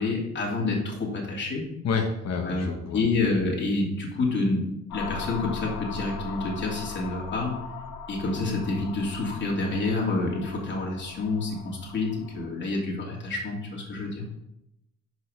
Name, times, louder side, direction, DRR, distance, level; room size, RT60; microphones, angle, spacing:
voice 1, 0.0-1.6 2.4-7.5 8.1-14.2, left 3 dB, 40° left, -3 dB, 2.9 m, -28 dB
voice 2, 1.8-3.0, left 5 dB, 60° left, 3 dB, 1.2 m, -28 dB
sound 1, 4.9-12.5, left 5 dB, 85° left, 1.0 m, -39 dB
6.2 x 5.4 x 6.3 m, 0.85 s
cardioid pair, 90°, 30 cm